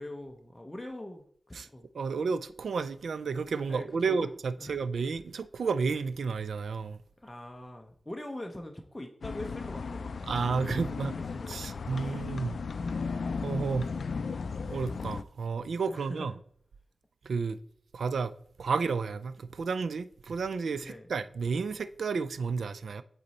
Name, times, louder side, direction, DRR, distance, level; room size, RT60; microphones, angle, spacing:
voice 1, 0.0-1.9 3.7-4.3 4.6-4.7 7.2-12.3 15.9-16.3 20.8-21.1, left 1 dB, 15° left, 0.8 m, -43 dB
voice 2, 1.9-7.0 10.3-11.1 11.5-12.6 13.4-13.9 14.7-16.3 17.2-17.6 17.9-23.0, right 5 dB, 90° right, 0.3 m, -31 dB
sound 1, 9.2-15.2, left 4 dB, 75° left, 0.3 m, -35 dB
8.0 x 4.1 x 4.2 m
wide cardioid pair, 80°, 0 cm